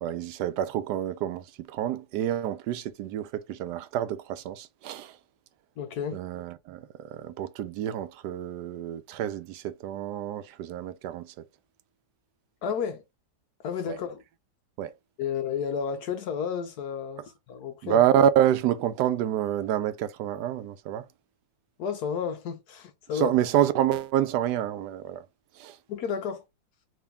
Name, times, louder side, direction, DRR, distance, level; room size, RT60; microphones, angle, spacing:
voice 1, 0.0-5.1 6.1-11.3 13.9-14.0 14.8-14.9 17.8-21.1 23.1-25.2 25.6-25.8, right 10 dB, 75° right, 1.0 m, -27 dB
voice 2, 5.8-6.2 12.6-13.0 13.6-14.2 15.2-18.0 21.8-23.4 25.9-26.4, left 7 dB, 70° left, 1.0 m, -32 dB
3.7 x 2.8 x 3.5 m
omnidirectional pair, 2.1 m